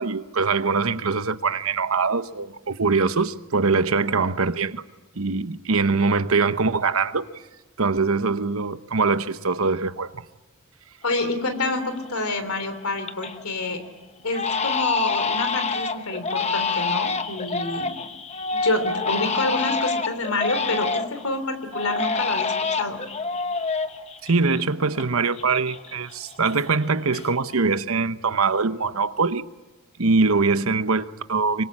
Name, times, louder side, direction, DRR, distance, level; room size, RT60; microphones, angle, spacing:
voice 1, 0.0-4.8 5.2-7.3 7.8-10.2 24.2-29.5 30.0-31.6, right 4 dB, 80° right, 1.0 m, -23 dB
voice 2, 11.0-13.8 14.2-17.9 18.5-23.0, left 2 dB, 90° left, 3.5 m, -27 dB
Crying sobbing, 11.7-12.2 12.6-13.4 13.7-13.9 14.3-21.3 21.7-25.1 25.3-26.8 27.1-27.7, left 4 dB, 30° left, 1.1 m, -27 dB
25.0 x 23.0 x 8.7 m
head